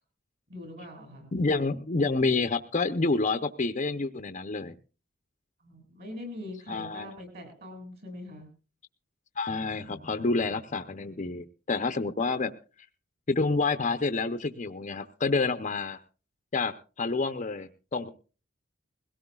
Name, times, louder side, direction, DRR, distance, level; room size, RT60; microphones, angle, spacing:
voice 1, 0.5-1.3 5.6-8.5, left 1 dB, 50° right, 5 dB, 7.8 m, -42 dB
voice 2, 1.3-4.8 6.7-7.1 9.4-12.5 13.3-16.0 16.5-18.1, left 3 dB, 35° left, 9 dB, 0.6 m, -28 dB
21.5 x 17.0 x 2.3 m, 0.35 s
head